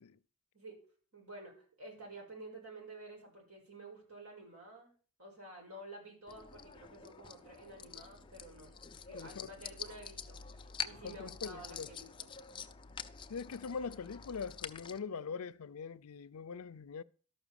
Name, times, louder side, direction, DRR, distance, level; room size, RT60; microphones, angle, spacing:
voice 1, 1.1-4.9 5.2-12.3, right 2 dB, 85° right, 6.0 m, -51 dB
sound 1, 6.3-15.0, left 7 dB, 20° left, 0.5 m, -47 dB
voice 2, 9.1-9.5 11.0-11.9 13.3-17.0, left 5 dB, 85° left, 0.5 m, -42 dB
13.0 x 6.1 x 7.0 m
head